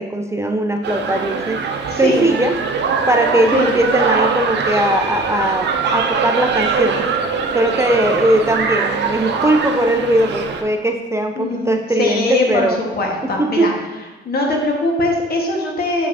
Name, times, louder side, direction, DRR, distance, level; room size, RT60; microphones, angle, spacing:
voice 1, 0.0-1.6 2.0-2.5 3.1-7.1 7.5-12.8 13.4-13.7, right 1 dB, 15° right, 4 dB, 0.4 m, -19 dB
sound 1, 0.8-10.6, right 5 dB, 60° right, 0.7 m, -22 dB
voice 2, 1.9-2.3 3.5-3.8 11.4-13.7 14.2-16.1, left 2 dB, 50° left, 0 dB, 1.4 m, -21 dB
6.5 x 5.5 x 2.7 m, 1.2 s
cardioid pair, 90°, 20 cm